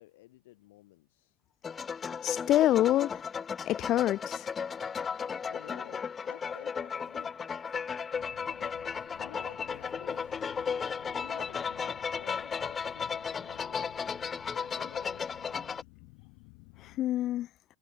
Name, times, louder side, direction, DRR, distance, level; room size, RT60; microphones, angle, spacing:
voice 1, 0.0-1.4 5.4-7.4 8.5-8.8 9.1-10.6 11.1-15.7, left 18 dB, 70° left, 6.7 m, -52 dB
sound 1, 1.6-15.8, left 6 dB, 15° left, 1.2 m, -35 dB
voice 2, 2.2-3.2 3.6-4.5 17.0-17.5, left 13 dB, 35° left, 0.5 m, -26 dB
sound 2, 8.1-17.0, left 40 dB or more, 55° left, 5.3 m, -55 dB
supercardioid pair, 150°, 0 cm